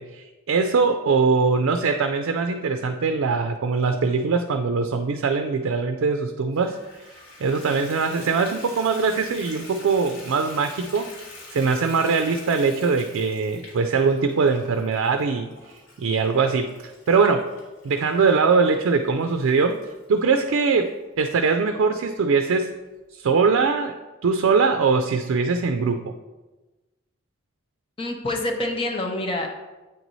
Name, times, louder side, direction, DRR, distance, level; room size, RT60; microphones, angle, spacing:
voice 1, 0.0-6.8 7.4-11.1 11.5-16.7 17.1-17.5 17.8-19.8 20.1-22.7 23.1-24.0 24.2-26.1, right 4 dB, 90° right, 7 dB, 0.4 m, -22 dB
Water tap faucet / Bathtub (filling or washing), 6.5-20.9 21.5-21.6 22.1-22.2 22.5-22.6, left 2 dB, 85° left, 1.7 m, -46 dB
voice 2, 28.0-29.5, left 1 dB, 25° left, 2 dB, 0.7 m, -26 dB
8.3 x 3.1 x 4.0 m, 1.1 s
head